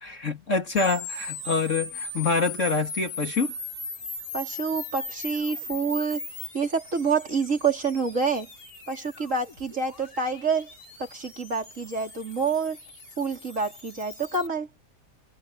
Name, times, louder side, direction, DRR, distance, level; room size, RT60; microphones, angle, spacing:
voice 1, 0.0-3.5, left 4 dB, 50° left, 3.0 m, -26 dB
sound 1, 0.8-14.5, left 2 dB, 65° left, 5.8 m, -39 dB
voice 2, 4.3-6.2 6.5-8.5 8.9-10.7 11.0-12.8 13.2-14.7, right 5 dB, 50° right, 4.1 m, -27 dB
omnidirectional pair, 1.7 m